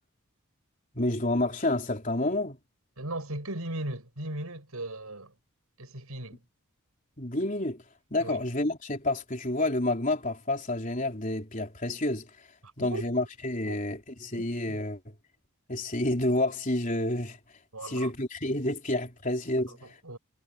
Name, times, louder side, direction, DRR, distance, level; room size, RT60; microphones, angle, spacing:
voice 1, 0.9-2.6 7.2-7.8 8.1-12.3 12.8-15.0 15.7-17.4 17.8-19.9, left 1 dB, 35° left, 3.8 m, -29 dB
voice 2, 3.0-5.3 5.8-6.4 8.2-8.4 12.6-13.0 13.7-13.8 17.7-18.1 19.7-20.2, right 1 dB, 80° right, 6.8 m, -37 dB
head